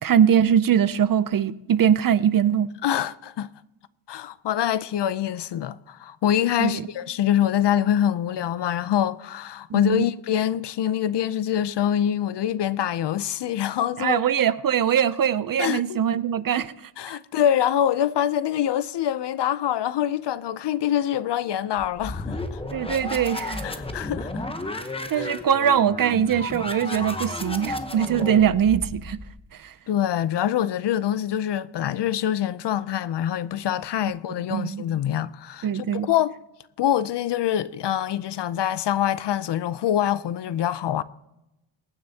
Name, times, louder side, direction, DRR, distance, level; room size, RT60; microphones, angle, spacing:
voice 1, 0.0-2.7 6.6-6.9 9.7-10.0 14.0-16.7 17.1-17.2 22.7-23.6 25.1-29.2 29.5-29.7 34.5-34.8 35.6-36.1, right 9 dB, 45° right, 0.5 m, -22 dB
voice 2, 2.8-3.5 4.1-14.2 15.6-16.0 17.0-22.6 23.6-24.4 25.1-25.3 29.9-36.4 36.8-41.0, left 10 dB, 60° left, 0.6 m, -25 dB
sound 1, 21.8-29.4, left 2 dB, 10° left, 0.9 m, -33 dB
23.0 x 9.7 x 2.8 m
wide cardioid pair, 160°, 47 cm